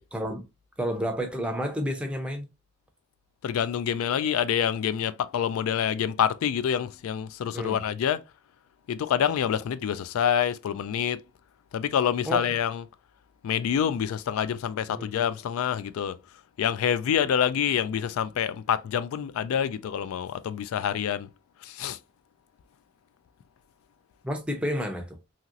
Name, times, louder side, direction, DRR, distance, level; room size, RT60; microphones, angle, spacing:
voice 1, 0.1-0.4 0.8-2.5 7.5-7.8 12.2-12.4 14.9-15.1 24.2-25.2, equal, 5° right, 0.5 m, -30 dB
voice 2, 3.4-8.2 8.9-11.2 11.7-12.8 13.4-16.2 16.6-21.3 21.6-22.0, left 8 dB, 80° left, 0.3 m, -27 dB
2.9 x 2.8 x 2.4 m
head